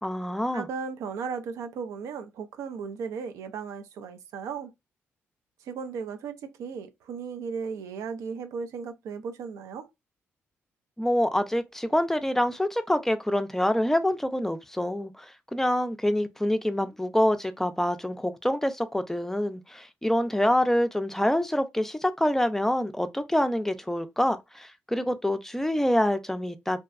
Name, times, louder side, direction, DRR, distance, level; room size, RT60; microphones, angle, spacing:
voice 1, 0.0-0.7 11.0-26.8, left 1 dB, 5° left, 0.4 m, -26 dB
voice 2, 0.5-4.7 5.6-9.9, right 6 dB, 80° right, 0.4 m, -36 dB
2.6 x 2.1 x 2.4 m
supercardioid pair, 60°, 5 cm